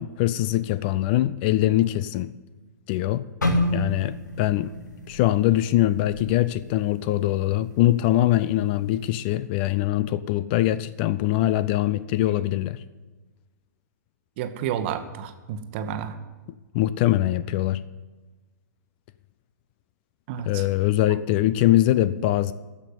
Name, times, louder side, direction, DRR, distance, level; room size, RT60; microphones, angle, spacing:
voice 1, 0.0-2.3 2.9-3.2 3.7-4.7 5.1-12.8 16.7-17.8 20.5-22.5, left 14 dB, 35° left, 0.4 m, -22 dB
sound 1, 3.4-7.4 7.8-8.1 8.7-9.0, left 1 dB, 75° left, 1.7 m, -30 dB
voice 2, 14.4-16.2 20.3-20.6, right 9 dB, 40° right, 1.1 m, -31 dB
14.5 x 5.7 x 9.4 m
figure-of-eight pair, 110°, 10 cm